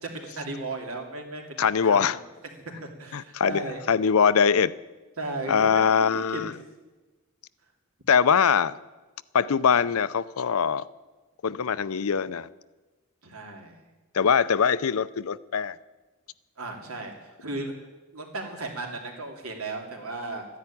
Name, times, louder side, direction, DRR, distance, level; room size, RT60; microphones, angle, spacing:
voice 1, 0.0-2.2 2.8-3.8 5.2-6.1 6.3-6.4 13.2-13.8 16.6-17.1 17.4-17.7 18.1-20.5, right 2 dB, 75° right, 3 dB, 2.9 m, -35 dB
voice 2, 1.6-2.2 3.1-4.7 5.5-6.5 8.1-8.8 9.3-10.9 11.4-12.5 14.1-15.8, left 6 dB, 75° left, 17 dB, 0.6 m, -22 dB
13.5 x 10.5 x 9.8 m, 1.2 s
head